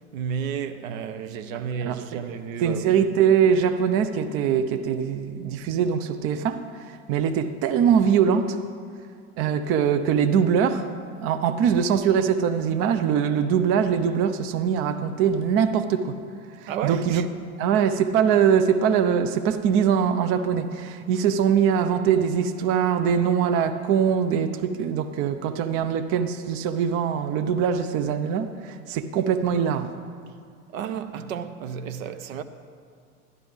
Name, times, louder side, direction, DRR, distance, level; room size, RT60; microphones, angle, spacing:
voice 1, 0.1-2.9 16.7-17.3 30.7-32.4, right 7 dB, 65° right, 0.7 m, -32 dB
voice 2, 1.5-2.2 2.6-8.6 9.4-10.9 11.2-16.2 16.6-17.3 17.6-29.9, right 7 dB, 30° right, 0.4 m, -22 dB
12.0 x 11.0 x 3.5 m
figure-of-eight pair, 75°, 44 cm